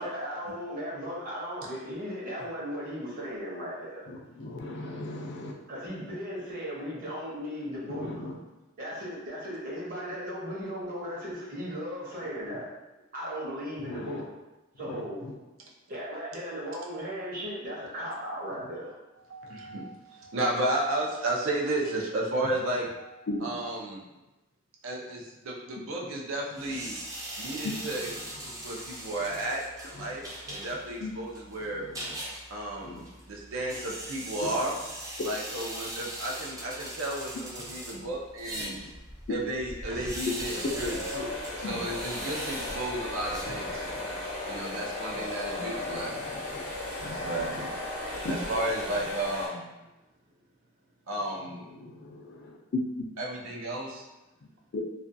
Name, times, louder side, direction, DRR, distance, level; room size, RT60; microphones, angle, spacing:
voice 1, 0.0-4.0 5.7-8.2 8.8-12.7 13.1-14.2 14.8-15.2 15.9-19.0, equal, 45° right, -6 dB, 0.8 m, -36 dB
voice 2, 4.1-5.5 7.9-8.3 13.8-14.2 14.8-15.3 23.3-23.4 27.6-27.7 31.0-31.1 31.7-32.2 32.8-33.0 38.6-38.9 41.6-41.8 43.8-44.0 45.8-46.6 47.0-47.7 51.7-52.6 54.7-54.8, left 2 dB, 55° left, 1 dB, 0.4 m, -39 dB
voice 3, 19.3-24.0 24.8-27.0 27.4-31.8 32.5-34.7 35.2-38.8 39.3-41.3 41.6-43.8 44.5-46.1 47.2-47.5 48.3-49.7 51.1-51.7 53.2-54.0, right 1 dB, 80° right, -2 dB, 0.5 m, -33 dB
sound 1, 26.5-44.0, right 1 dB, 15° right, 0.4 m, -41 dB
sound 2, 40.3-49.5, left 2 dB, 75° left, 0.7 m, -36 dB
2.4 x 2.2 x 2.5 m, 1.0 s
head